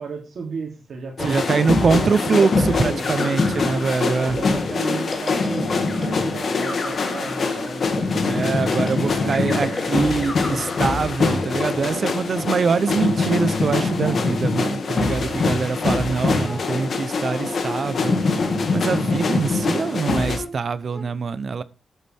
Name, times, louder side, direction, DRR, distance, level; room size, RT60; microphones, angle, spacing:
voice 1, 0.0-3.1 4.0-8.1 8.8-9.9 11.8-12.0 15.2-15.6, right 5 dB, 65° right, 3.0 m, -34 dB
sound 1, 1.2-20.4, left 4 dB, 55° left, 2.1 m, -23 dB
voice 2, 1.2-4.4 8.2-18.2 18.7-21.6, right 5 dB, 50° right, 0.8 m, -23 dB
sound 2, 2.1-12.7, left 2 dB, 30° left, 2.8 m, -34 dB
sound 3, 13.0-14.5 15.0-19.0 19.5-21.0, right 1 dB, 5° right, 1.8 m, -38 dB
12.0 x 8.4 x 3.5 m
wide cardioid pair, 140°, 0 cm